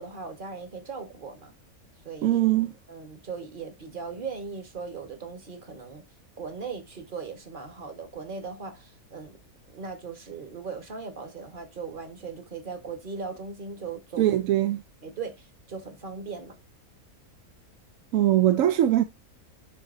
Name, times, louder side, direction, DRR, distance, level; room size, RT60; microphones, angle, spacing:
voice 1, 0.0-1.5 2.0-2.4 2.9-6.0 6.4-9.4 9.7-14.2 15.0-16.6, right 5 dB, 35° right, 1.3 m, -38 dB
voice 2, 2.2-2.7 14.2-14.8 18.1-19.0, right 13 dB, 70° right, 0.9 m, -21 dB
10.5 x 3.9 x 2.5 m
omnidirectional pair, 1.6 m